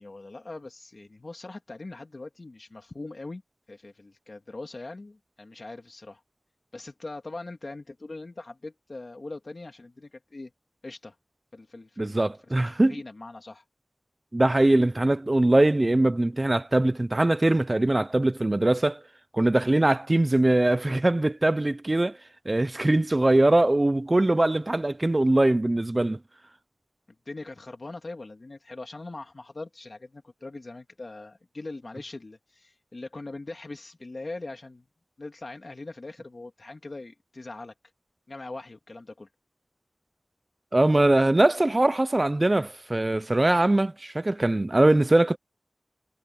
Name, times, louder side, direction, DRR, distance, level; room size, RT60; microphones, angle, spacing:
voice 1, 0.0-3.4 3.7-6.2 6.7-10.5 10.8-11.2 11.5-13.6 27.3-34.8 35.2-37.7 38.3-39.3, left 2 dB, 65° left, 1.7 m, -41 dB
voice 2, 12.0-13.0 14.3-19.0 19.3-22.2 22.5-26.2 40.7-45.4, right 2 dB, 40° right, 0.4 m, -22 dB
wide cardioid pair, 65°, 0 cm